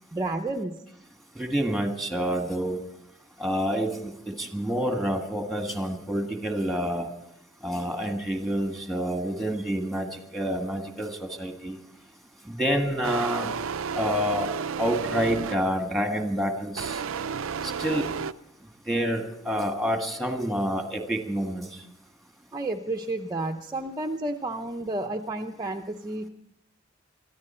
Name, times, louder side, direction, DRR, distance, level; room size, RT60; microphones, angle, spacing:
voice 1, 0.1-0.8 22.5-26.3, right 2 dB, 20° right, 2 dB, 0.7 m, -31 dB
voice 2, 1.4-2.8 3.4-7.1 7.6-11.8 12.5-13.5 13.9-14.5 14.8-17.0 17.8-18.1 18.9-21.7, equal, ahead, 4 dB, 1.7 m, -28 dB
sound 1, 13.0-15.8 16.7-18.3, right 6 dB, 85° right, 0.5 m, -32 dB
23.0 x 14.0 x 4.4 m, 0.80 s
head